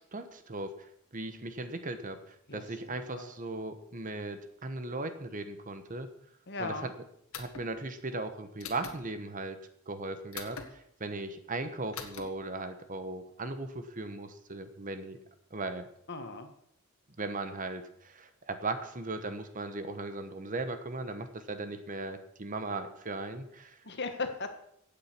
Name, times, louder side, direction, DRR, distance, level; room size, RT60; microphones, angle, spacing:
voice 1, 0.1-6.1 6.6-6.9 7.4-9.6 9.9-15.2 15.5-15.8 17.2-23.8, right 2 dB, 40° right, 9 dB, 1.2 m, -38 dB
voice 2, 2.5-3.3 6.5-6.9 16.1-16.5 23.8-24.5, left 3 dB, 50° left, 7 dB, 1.6 m, -37 dB
sound 1, 7.3-7.7 8.6-9.0 10.3-10.7 11.9-12.2, left 6 dB, 80° left, 1.8 m, -42 dB
15.5 x 8.7 x 6.1 m, 0.72 s
head